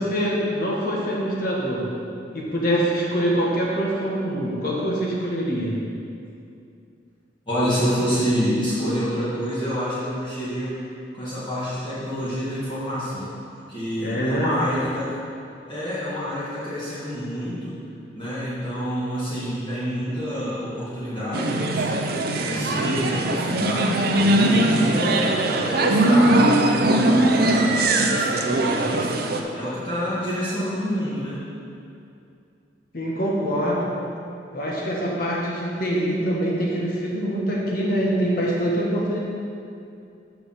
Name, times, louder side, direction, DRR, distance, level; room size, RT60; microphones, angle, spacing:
voice 1, 0.0-1.8 2.3-5.7 14.0-14.5 32.9-33.9 34.5-39.2, equal, 50° left, -4 dB, 1.4 m, -24 dB
voice 2, 7.5-10.7 11.1-15.2 15.7-17.8 18.1-24.0 24.3-29.1 29.5-31.4, equal, 25° left, -11 dB, 1.6 m, -27 dB
sound 1, 21.3-29.4, right 1 dB, 55° right, 0.5 m, -20 dB
5.8 x 5.0 x 6.3 m, 2.5 s
head